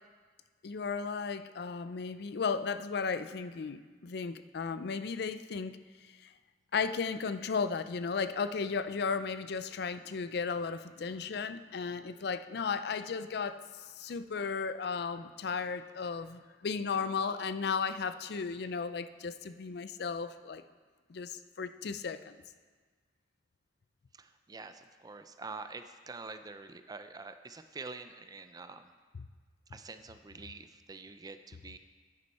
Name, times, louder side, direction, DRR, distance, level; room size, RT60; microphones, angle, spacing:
voice 1, 0.6-5.8 6.0-6.3 6.7-20.6 21.1-22.3, left 5 dB, 65° left, 11 dB, 0.4 m, -35 dB
voice 2, 24.1-28.9 29.7-31.8, right 3 dB, 20° right, 9 dB, 0.4 m, -46 dB
9.8 x 9.7 x 4.2 m, 1.5 s
head